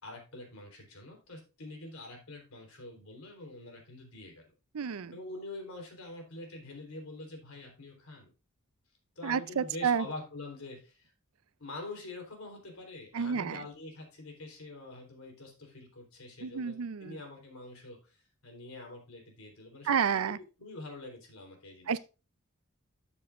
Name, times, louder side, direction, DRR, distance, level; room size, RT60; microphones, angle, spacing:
voice 1, 0.0-4.5 5.1-8.3 9.2-11.1 11.6-22.0, left 2 dB, 80° left, 3.7 m, -45 dB
voice 2, 4.7-5.2 9.2-10.1 13.1-13.6 16.4-17.2 19.8-20.4 21.9-22.0, right 7 dB, 90° right, 0.5 m, -30 dB
13.0 x 7.1 x 2.5 m
head